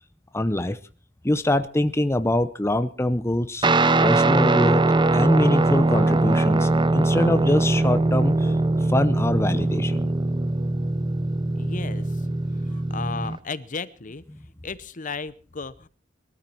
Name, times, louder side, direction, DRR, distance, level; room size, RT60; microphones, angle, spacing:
voice 1, 0.3-0.8 1.2-3.7 4.0-4.8 5.1-8.5 8.9-10.1, left 1 dB, 15° left, 10 dB, 0.7 m, -24 dB
Guitar, 3.6-13.4, right 2 dB, 25° right, 0.7 m, -21 dB
voice 2, 11.5-12.3 12.7-15.9, left 4 dB, 40° left, 16 dB, 0.9 m, -35 dB
22.5 x 13.5 x 4.5 m, 0.39 s
head